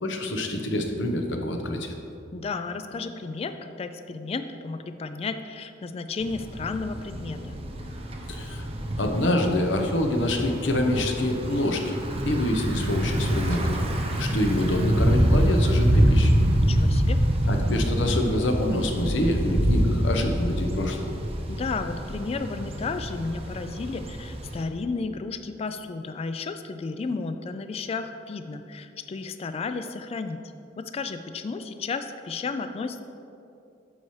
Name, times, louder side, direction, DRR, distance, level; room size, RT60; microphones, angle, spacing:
voice 1, 0.0-1.9 8.3-8.7 9.0-12.0 12.2-13.8 14.2-16.4 17.5-21.1, left 1 dB, 65° left, 3 dB, 0.9 m, -26 dB
voice 2, 2.3-7.6 16.6-17.2 21.5-30.4 30.8-33.0, left 4 dB, 30° left, 9 dB, 0.3 m, -33 dB
Thunder / Bicycle, 6.2-24.6, equal, 30° right, 0.7 m, -26 dB
9.8 x 7.0 x 3.2 m, 2.7 s
head